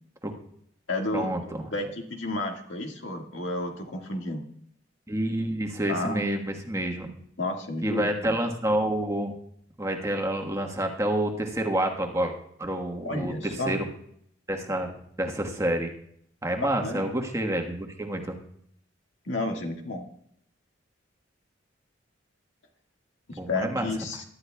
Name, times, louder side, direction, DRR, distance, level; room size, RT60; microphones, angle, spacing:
voice 1, 0.9-4.4 5.9-6.2 7.4-8.4 13.0-13.7 16.6-17.1 19.3-20.1 23.3-24.2, left 2 dB, 75° left, 3 dB, 1.8 m, -31 dB
voice 2, 5.1-7.1 7.8-9.3 9.8-12.3 12.6-13.9 14.5-15.9 16.4-18.4 23.4-23.9, right 1 dB, 15° right, 2 dB, 1.3 m, -28 dB
23.0 x 11.5 x 2.3 m, 0.70 s
head